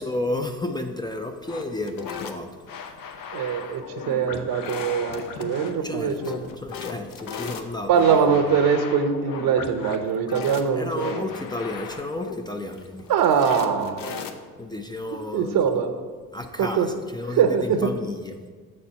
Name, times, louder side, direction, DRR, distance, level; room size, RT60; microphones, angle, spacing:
voice 1, 0.0-2.5 2.8-3.0 5.8-8.4 10.8-13.1 14.6-15.6 16.3-18.5, left 2 dB, 15° left, 5 dB, 0.4 m, -32 dB
sound 1, 1.5-14.7, left 6 dB, 65° left, 0.7 m, -36 dB
voice 2, 3.3-6.4 7.9-11.3 13.1-14.2 15.3-15.9 16.6-16.9 17.4-17.9, right 7 dB, 70° right, 7 dB, 0.8 m, -22 dB
7.2 x 4.3 x 5.4 m, 1.5 s
cardioid pair, 105°, 35 cm